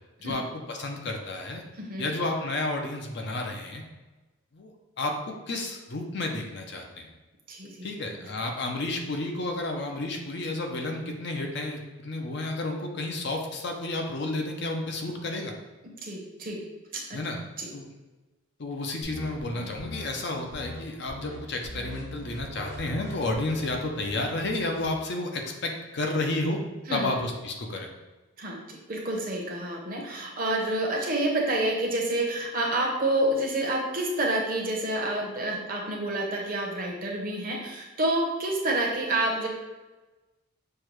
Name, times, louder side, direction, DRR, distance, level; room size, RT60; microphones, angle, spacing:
voice 1, 0.7-1.6 2.0-3.8 4.5-4.7 5.0-7.1 7.8-15.5 17.1-17.4 17.7-17.9 18.6-26.6 26.9-27.9, left 2 dB, 50° left, 2 dB, 0.5 m, -31 dB
voice 2, 1.8-2.1 7.5-7.9 16.0-16.6 16.9-17.2 17.6-17.7 26.9-27.2 28.4-39.5, right 1 dB, 40° right, -1 dB, 0.8 m, -28 dB
sound 1, 19.0-20.1 20.5-20.8 21.1-21.4 21.6-24.9, left 1 dB, 80° left, 1.0 m, -41 dB
6.5 x 2.2 x 3.0 m, 1.2 s
head